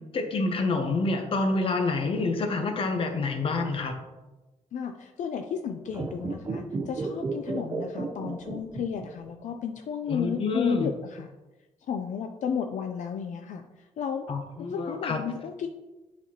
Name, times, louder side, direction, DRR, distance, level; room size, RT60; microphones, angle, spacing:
voice 1, 0.1-4.0 10.1-10.9 14.3-15.2, left 3 dB, 45° left, 5 dB, 0.8 m, -28 dB
voice 2, 4.7-11.3 11.9-13.6 14.0-14.3 14.6-15.7, left 7 dB, 75° left, 5 dB, 0.4 m, -33 dB
sound 1, 5.9-9.3 9.5-9.6, right 3 dB, 30° right, 0.5 m, -33 dB
9.8 x 4.2 x 2.8 m, 1.1 s
wide cardioid pair, 175°, 13 cm